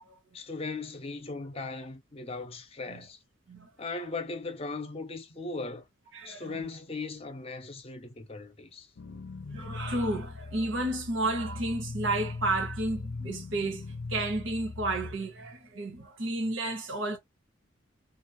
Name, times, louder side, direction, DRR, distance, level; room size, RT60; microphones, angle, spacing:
voice 1, 0.3-3.2 3.8-5.8 6.2-8.9, left 3 dB, 30° left, 0.7 m, -38 dB
voice 2, 6.1-6.6 9.5-17.2, right 2 dB, 75° right, 1.0 m, -32 dB
sound 1, 9.0-15.1, left 3 dB, 70° left, 0.5 m, -40 dB
2.5 x 2.4 x 2.8 m
head